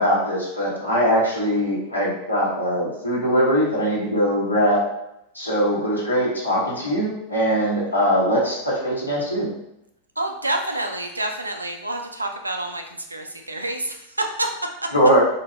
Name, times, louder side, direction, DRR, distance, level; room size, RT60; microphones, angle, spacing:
voice 1, 0.0-4.8 5.3-9.5 14.9-15.2, equal, 85° left, -6 dB, 0.8 m, -21 dB
voice 2, 10.2-14.5, right 1 dB, 80° right, 4 dB, 0.3 m, -28 dB
2.6 x 2.2 x 3.1 m, 0.80 s
figure-of-eight pair, 90°, 0 cm